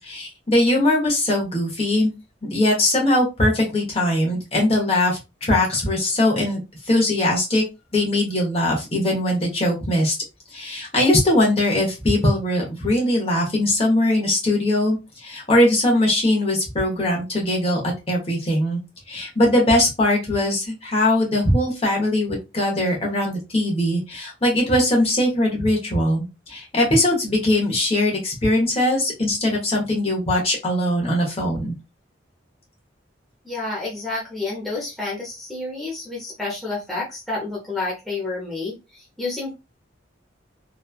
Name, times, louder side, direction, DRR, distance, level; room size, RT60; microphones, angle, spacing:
voice 1, 0.0-2.1 2.4-6.6 6.9-7.6 7.9-10.1 10.5-18.8 19.1-31.7, left 1 dB, 30° left, -2 dB, 1.0 m, -21 dB
voice 2, 33.4-39.5, left 3 dB, ahead, -6 dB, 0.7 m, -29 dB
3.0 x 2.3 x 2.3 m, 0.26 s
head